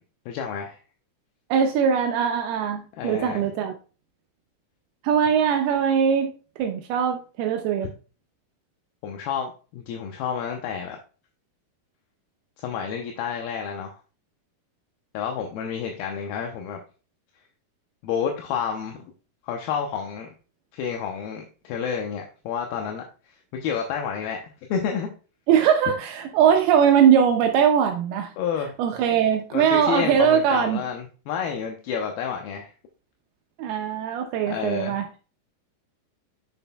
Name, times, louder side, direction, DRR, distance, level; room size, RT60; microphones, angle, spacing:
voice 1, 0.3-0.8 3.0-3.4 9.0-11.0 12.6-13.9 15.1-16.8 18.0-19.1 19.4-20.3 20.7-24.4 24.7-25.1 28.4-28.7 29.5-32.7 34.5-35.0, left 7 dB, 80° left, 3 dB, 2.6 m, -30 dB
voice 2, 1.5-3.7 5.0-6.3 6.6-7.9 25.5-28.3 28.8-30.8 33.6-35.0, right 8 dB, 80° right, 4 dB, 2.6 m, -21 dB
9.1 x 6.1 x 2.2 m, 0.35 s
omnidirectional pair, 4.6 m